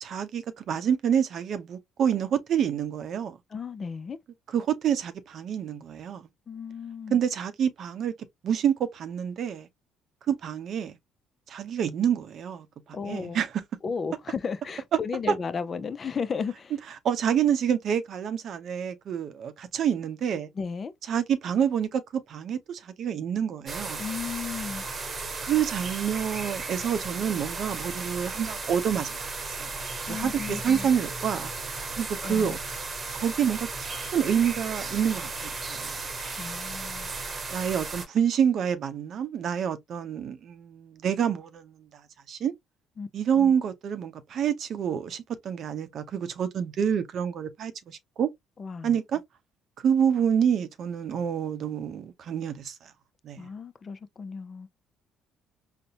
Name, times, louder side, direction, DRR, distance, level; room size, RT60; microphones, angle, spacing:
voice 1, 0.0-3.4 4.5-6.3 7.1-8.1 8.4-9.7 10.3-11.0 11.5-13.6 17.0-20.5 21.1-24.0 25.4-29.2 29.5-29.7 30.1-31.5 31.9-32.6 33.1-36.0 37.5-41.9 42.3-42.5 43.1-48.3 48.8-49.2 49.8-52.9 53.2-53.5, right 8 dB, 60° right, 0.6 m, -27 dB
voice 2, 3.5-4.2 6.5-7.2 12.9-13.4 13.8-16.8 20.5-20.9 24.0-24.8 30.1-30.9 32.2-32.6 36.2-37.1 43.0-43.1 43.3-43.5 48.6-49.0 53.4-54.7, left 5 dB, 40° left, 0.4 m, -34 dB
sound 1, 23.7-38.1, right 3 dB, 40° right, 0.9 m, -35 dB
4.1 x 2.1 x 2.7 m
supercardioid pair, 80°, 0 cm